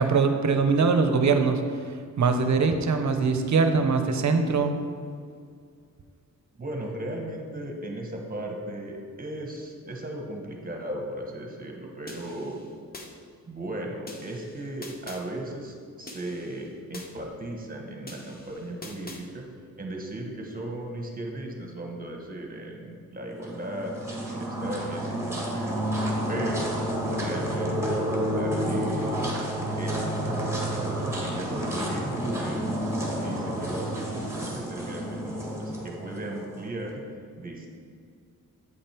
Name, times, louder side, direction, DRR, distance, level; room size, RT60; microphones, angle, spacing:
voice 1, 0.0-1.6 2.2-4.7, right 4 dB, 60° right, 6 dB, 0.8 m, -22 dB
voice 2, 6.6-12.6 13.5-19.4 19.8-25.8 26.3-26.7 27.1-28.0 28.3-29.5 29.8-32.8 33.2-37.7, right 1 dB, 25° right, 1 dB, 1.2 m, -36 dB
sound 1, 12.1-13.1 14.1-15.2 16.1-17.1 18.1-19.2, left 2 dB, 30° left, 0.9 m, -44 dB
sound 2, 23.3-36.7, equal, 10° right, 1.5 m, -30 dB
8.5 x 5.2 x 4.4 m, 2.2 s
wide cardioid pair, 110°, 33 cm